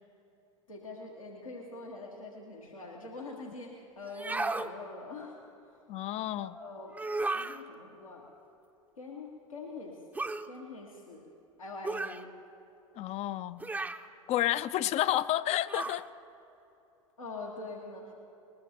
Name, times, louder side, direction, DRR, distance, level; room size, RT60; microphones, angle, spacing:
voice 1, 0.7-5.4 6.4-7.0 7.3-8.3 9.0-10.0 10.5-11.3 11.6-12.3 17.2-18.1, left 3 dB, 90° left, -3 dB, 1.6 m, -44 dB
sound 1, 4.1-4.7 6.9-7.6 10.1-10.5 11.8-12.2 13.6-14.1 15.7-16.0, right 2 dB, 10° right, 0.6 m, -34 dB
voice 2, 5.9-6.5 13.0-13.6 14.3-16.1, left 13 dB, 40° left, 14 dB, 0.5 m, -30 dB
20.0 x 20.0 x 2.9 m, 2.9 s
hypercardioid pair, 80°, 17 cm